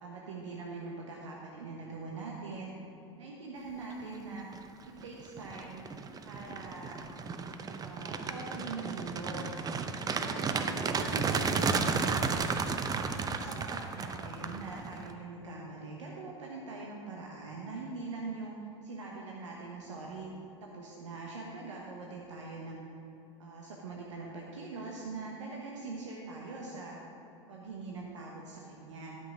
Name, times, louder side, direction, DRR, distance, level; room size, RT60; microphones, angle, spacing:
voice 1, 0.0-2.8 3.2-4.5 5.0-5.9 6.2-7.1 7.8-9.6 10.2-12.2 12.9-20.3 20.6-22.8 23.4-27.0 27.5-29.2, right 3 dB, 80° right, -2 dB, 1.2 m, -42 dB
sound 1, 4.3-4.6 5.0-15.1, right 5 dB, 25° right, 0.6 m, -33 dB
12.5 x 6.0 x 5.0 m, 2.9 s
hypercardioid pair, 85°, 15 cm